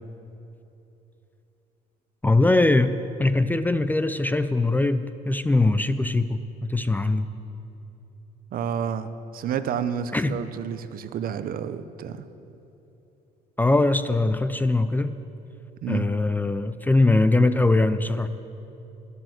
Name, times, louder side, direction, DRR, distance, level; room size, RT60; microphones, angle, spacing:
voice 1, 2.2-7.3 10.1-10.4 13.6-15.1 15.9-18.3, left 2 dB, 10° left, 12 dB, 0.4 m, -22 dB
voice 2, 8.5-12.2 15.8-16.1, right 8 dB, 60° right, 12 dB, 0.8 m, -30 dB
12.0 x 11.5 x 7.9 m, 3.0 s
cardioid pair, 110°, 17 cm